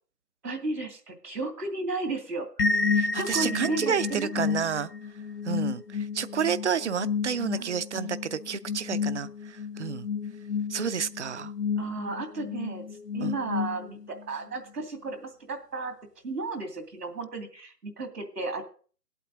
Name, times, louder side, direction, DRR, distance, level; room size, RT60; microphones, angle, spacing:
voice 1, 0.4-2.8 3.1-4.3 4.6-4.7 7.6-7.7 11.8-12.8 13.1-15.9 16.2-18.6, right 3 dB, 80° right, 6 dB, 2.7 m, -34 dB
sound 1, 2.6-14.2, left 5 dB, 85° left, 1.3 m, -31 dB
voice 2, 2.9-4.9 5.4-10.1 10.7-11.5 13.2-13.3, right 7 dB, 50° right, 16 dB, 0.5 m, -30 dB
18.0 x 8.2 x 3.8 m, 0.42 s
figure-of-eight pair, 145°, 47 cm